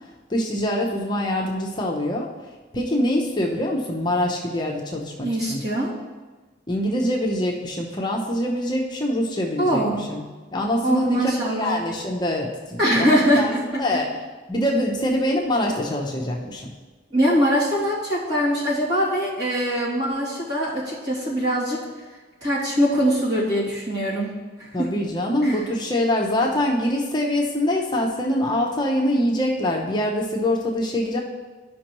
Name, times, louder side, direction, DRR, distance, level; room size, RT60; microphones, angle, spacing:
voice 1, 0.3-2.3 2.7-5.6 6.7-10.2 10.5-13.1 13.4-13.5 13.8-14.1 14.5-16.7 24.7-31.2, left 1 dB, 20° left, -1 dB, 0.7 m, -24 dB
voice 2, 5.2-5.9 9.6-10.0 10.8-11.8 12.8-13.6 17.1-21.8 22.4-24.3 24.8-24.9 25.4-25.6, equal, 60° right, -8 dB, 2.5 m, -22 dB
13.0 x 5.2 x 3.0 m, 1.3 s
head